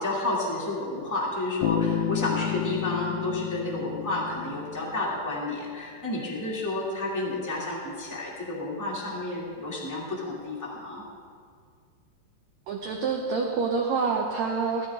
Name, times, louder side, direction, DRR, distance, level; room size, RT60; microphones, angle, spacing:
voice 1, 0.0-11.0, left 2 dB, 10° left, -4 dB, 1.0 m, -31 dB
Bass guitar, 1.6-5.4, left 11 dB, 80° left, 2.3 m, -31 dB
voice 2, 12.7-14.9, right 4 dB, 90° right, 1 dB, 1.5 m, -27 dB
16.0 x 13.5 x 3.6 m, 2.1 s
omnidirectional pair, 4.5 m